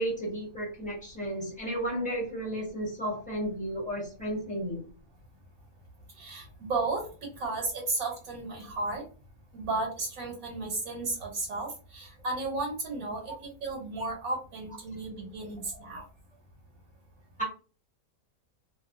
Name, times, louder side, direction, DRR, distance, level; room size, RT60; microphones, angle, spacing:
voice 1, 0.0-4.8 17.4-17.5, right 1 dB, 5° left, -3 dB, 0.8 m, -33 dB
voice 2, 6.2-7.0 7.4-9.0 9.5-16.0, right 3 dB, 70° right, 0 dB, 1.2 m, -34 dB
2.6 x 2.2 x 2.4 m, 0.37 s
omnidirectional pair, 1.6 m